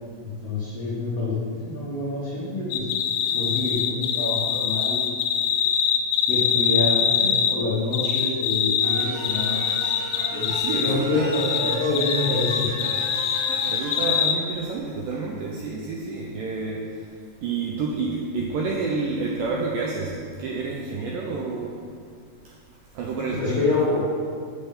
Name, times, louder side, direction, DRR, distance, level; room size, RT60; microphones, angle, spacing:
voice 1, 0.2-2.9 3.3-5.1 6.3-9.6 10.1-12.7 23.3-24.1, left 2 dB, 60° left, -9 dB, 1.6 m, -27 dB
sound 1, 2.7-7.6 7.9-11.0 11.3-14.3, left 8 dB, 80° left, 2.1 m, -23 dB
sound 2, 8.8-14.2, right 1 dB, 55° right, 1.8 m, -35 dB
voice 2, 10.5-11.4 13.6-16.9 17.4-21.8 23.0-23.7, right 4 dB, 85° right, -1 dB, 1.9 m, -29 dB
6.6 x 6.3 x 6.8 m, 2.2 s
omnidirectional pair, 4.6 m